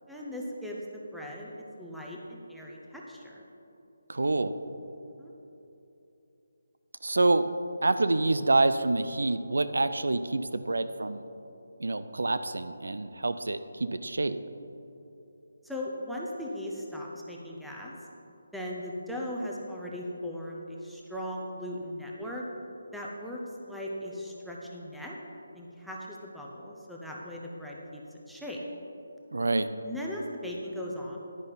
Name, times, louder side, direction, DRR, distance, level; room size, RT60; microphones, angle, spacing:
voice 1, 0.1-3.3 5.2-5.3 15.6-17.9 18.5-22.4 22.9-25.2 25.5-28.0 28.3-28.6 29.8-31.2, left 1 dB, ahead, -4 dB, 0.7 m, -38 dB
voice 2, 4.1-4.5 7.0-7.4 7.8-11.2 11.8-14.4 29.3-29.7, right 2 dB, 90° right, 11 dB, 0.5 m, -27 dB
10.5 x 9.9 x 4.1 m, 2.9 s
hypercardioid pair, 175°, 0 cm